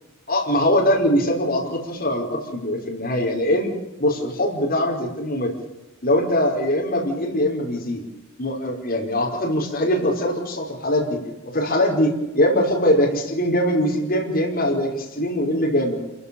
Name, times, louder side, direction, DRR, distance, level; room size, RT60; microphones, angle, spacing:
voice 1, 0.3-3.7 4.0-5.5 6.0-8.0 8.4-11.2 11.5-16.0, left 1 dB, 50° left, -1 dB, 5.3 m, -22 dB
29.0 x 16.5 x 7.2 m, 1.0 s
head